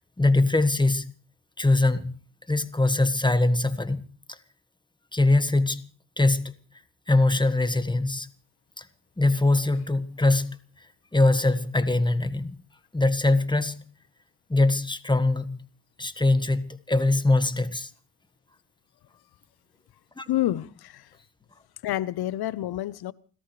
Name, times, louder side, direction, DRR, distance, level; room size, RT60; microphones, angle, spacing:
voice 1, 0.2-1.1 1.6-2.2 2.5-4.0 4.3-4.4 5.1-5.8 6.2-6.5 7.1-8.3 8.8-8.9 9.2-10.6 11.1-12.6 12.9-13.8 14.5-15.7 16.0-17.9 20.2-20.3, left 2 dB, 10° left, 1.6 m, -22 dB
voice 2, 20.3-21.0 21.8-23.1, left 13 dB, 65° left, 0.9 m, -28 dB
29.5 x 13.5 x 3.3 m
supercardioid pair, 70°, 41 cm